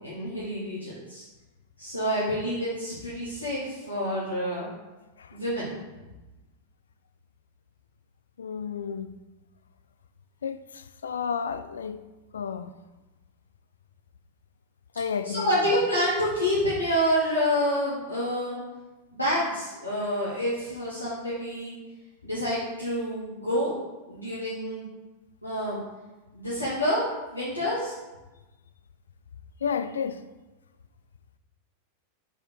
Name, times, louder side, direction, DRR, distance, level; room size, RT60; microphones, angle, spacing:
voice 1, 0.0-1.2 1.8-4.7 5.3-5.7 15.2-18.6 19.1-21.7 22.2-23.7 24.1-24.8 25.4-25.8 26.3-27.9, equal, 85° left, 1.2 m, -28 dB
voice 2, 8.4-9.1 10.4-12.0 12.3-12.7 15.0-15.5 29.6-30.2, left 6 dB, 70° left, 0.3 m, -31 dB
5.0 x 4.2 x 4.5 m
figure-of-eight pair, 90°, 0 cm